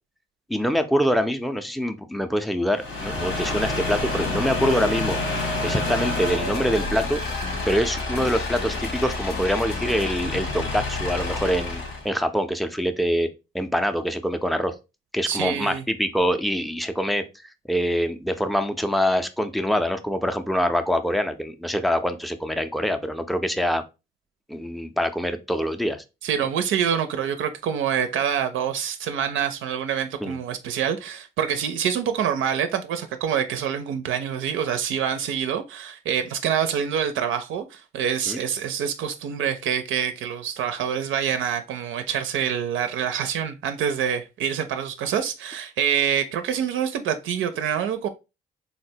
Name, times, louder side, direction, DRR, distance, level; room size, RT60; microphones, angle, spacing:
voice 1, 0.5-7.2 7.7-13.3 13.5-14.7 15.1-17.2 17.7-23.8 24.5-26.0 30.2-30.4 38.3-38.4, equal, ahead, 0.4 m, -25 dB
sound 1, 2.7-12.1, left 2 dB, 85° left, 1.3 m, -29 dB
sound 2, 4.2-12.5, left 6 dB, 50° left, 0.5 m, -38 dB
voice 2, 15.3-15.8 26.2-48.1, right 8 dB, 80° right, 0.4 m, -26 dB
3.9 x 2.1 x 2.6 m
cardioid pair, 90°, 20 cm